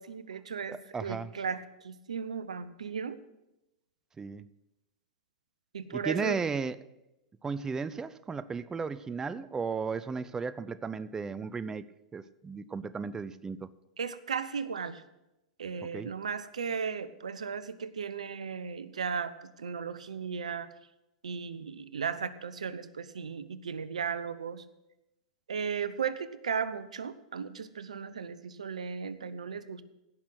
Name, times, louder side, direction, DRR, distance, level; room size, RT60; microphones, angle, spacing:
voice 1, 0.0-3.2 5.7-6.4 14.0-15.0 15.6-20.7 21.2-24.6 25.5-29.8, right 6 dB, 85° right, 15 dB, 0.7 m, -36 dB
voice 2, 0.7-1.3 4.2-4.4 5.9-6.8 7.4-11.8 12.1-13.7 15.9-16.1, right 5 dB, 15° right, 16 dB, 0.5 m, -35 dB
16.5 x 6.1 x 6.3 m, 0.93 s
hypercardioid pair, 105°, 4 cm